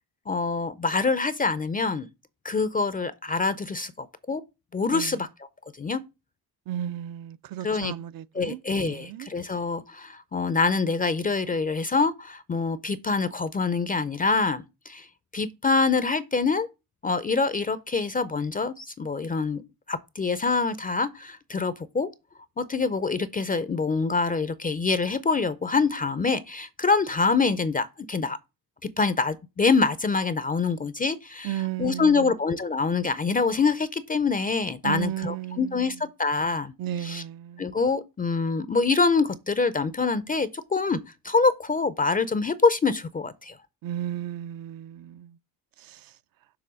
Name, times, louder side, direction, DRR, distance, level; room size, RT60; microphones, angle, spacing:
voice 1, 0.3-2.1 2.4-4.4 4.7-5.3 5.8-6.0 7.6-7.9 8.3-15.1 15.3-16.7 17.0-19.6 19.9-22.1 22.6-28.4 28.8-36.7 37.0-37.2 37.6-41.0 41.2-43.6, left 4 dB, 20° left, 0.4 m, -25 dB
voice 2, 6.7-9.3 31.4-32.4 34.8-36.0 36.8-37.7 43.8-45.4 45.8-46.1, right 11 dB, 60° right, 0.5 m, -34 dB
6.9 x 3.3 x 6.2 m
cardioid pair, 120°, 41 cm